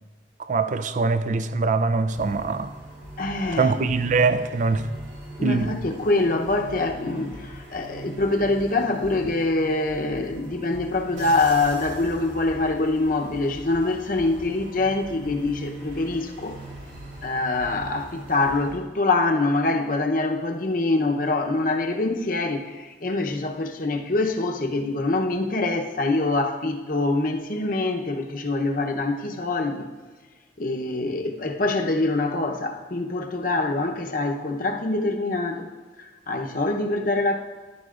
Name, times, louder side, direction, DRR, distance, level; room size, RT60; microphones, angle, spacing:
voice 1, 0.5-2.7 3.5-4.9 5.4-5.8, right 4 dB, 45° right, 0.4 m, -23 dB
sound 1, 2.1-18.8, right 1 dB, 85° right, 2.2 m, -41 dB
voice 2, 3.2-3.8 5.4-16.6 17.2-29.9 30.6-35.7 36.0-37.4, left 2 dB, 50° left, 0.8 m, -25 dB
14.0 x 11.0 x 2.5 m
head